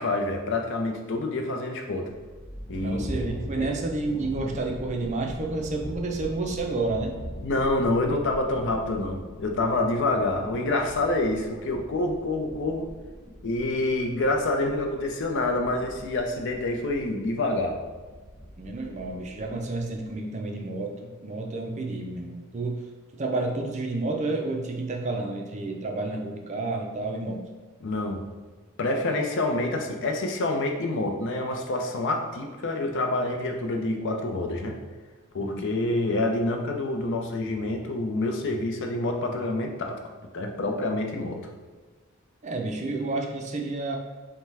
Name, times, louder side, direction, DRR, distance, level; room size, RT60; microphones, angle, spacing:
voice 1, 0.0-2.1 2.7-3.0 3.5-3.7 7.4-12.9 13.4-17.8 27.8-28.2 28.8-34.8 35.3-40.0 40.3-41.5, left 2 dB, 60° left, 3 dB, 0.5 m, -27 dB
sound 1, 2.1-20.1, equal, 20° left, 1.0 m, -41 dB
voice 2, 2.8-7.1 18.6-22.8 23.1-27.4 35.4-35.6 42.4-44.0, right 2 dB, 35° right, 2 dB, 0.5 m, -30 dB
5.5 x 2.2 x 3.3 m, 1.4 s
head